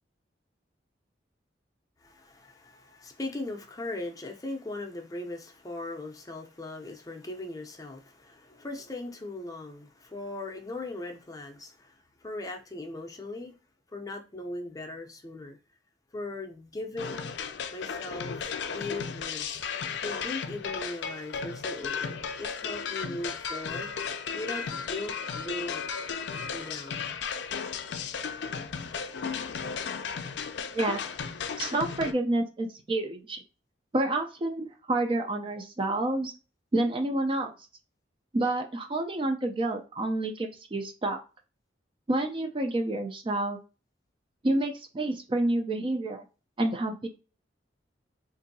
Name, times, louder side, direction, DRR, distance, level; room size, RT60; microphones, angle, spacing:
voice 1, 2.0-13.5 13.9-15.6 16.1-17.3 17.7-19.6 20.0-23.9 24.3-25.9 26.5-27.1, left 2 dB, 20° left, 0.5 m, -39 dB
sound 1, 17.0-32.1, left 6 dB, 70° left, 0.4 m, -35 dB
voice 2, 31.6-33.4 33.9-36.3 36.7-37.5 38.3-41.2 42.1-43.6 44.4-46.2 46.6-47.1, right 2 dB, 30° right, 0.4 m, -28 dB
3.8 x 2.6 x 2.6 m
head